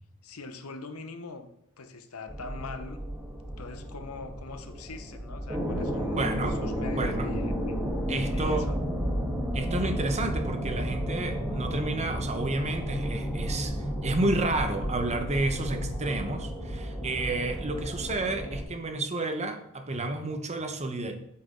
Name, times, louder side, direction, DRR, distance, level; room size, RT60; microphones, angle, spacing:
voice 1, 0.2-1.5 1.8-3.0 3.6-6.3 6.6-7.7 8.3-8.8, left 3 dB, 90° left, 8 dB, 1.0 m, -42 dB
sound 1, 2.3-18.6, equal, 10° right, 1.5 m, -32 dB
voice 2, 6.2-6.6 7.0-7.3 8.1-8.7 9.5-13.7 14.0-21.1, right 2 dB, 30° right, 6 dB, 1.0 m, -30 dB
8.6 x 8.3 x 3.8 m, 0.76 s
head